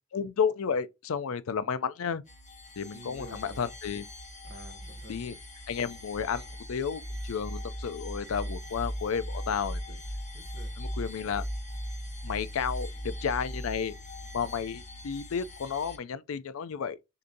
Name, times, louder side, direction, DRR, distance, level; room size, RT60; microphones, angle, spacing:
voice 1, 0.1-2.2 2.8-4.1 5.1-5.4 5.7-6.4 6.7-10.0 10.8-11.5 12.2-13.9 14.3-17.0, left 6 dB, 75° left, 0.4 m, -32 dB
sound 1, 2.3-16.0, equal, 35° left, 0.8 m, -39 dB
voice 2, 2.9-3.7 4.4-5.2 9.9-10.8, right 2 dB, 50° right, 0.8 m, -50 dB
6.5 x 2.6 x 2.7 m
head